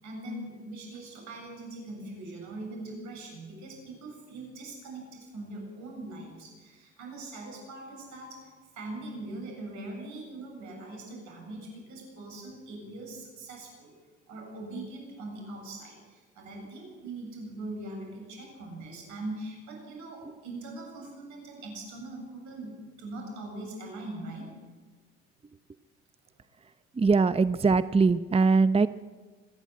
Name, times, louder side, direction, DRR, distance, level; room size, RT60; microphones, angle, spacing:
voice 1, 0.0-13.9 14.3-24.5, right 2 dB, 75° right, 1 dB, 7.9 m, -41 dB
voice 2, 26.9-28.9, right 4 dB, 20° right, 14 dB, 0.7 m, -22 dB
25.5 x 11.0 x 9.5 m, 1.4 s
hypercardioid pair, 55°, 29 cm